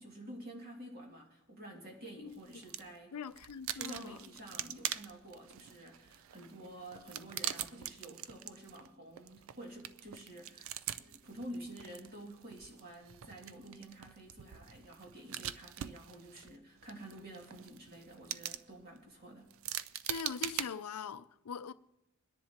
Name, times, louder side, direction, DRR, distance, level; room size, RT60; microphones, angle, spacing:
voice 1, 0.0-3.2 3.7-19.5, right 1 dB, 45° right, 2.4 m, -50 dB
sound 1, 2.3-3.0 3.3-20.7, right 11 dB, 60° right, 0.4 m, -44 dB
voice 2, 3.1-4.2 20.0-21.7, left 6 dB, 85° left, 0.5 m, -42 dB
23.5 x 10.5 x 2.9 m
head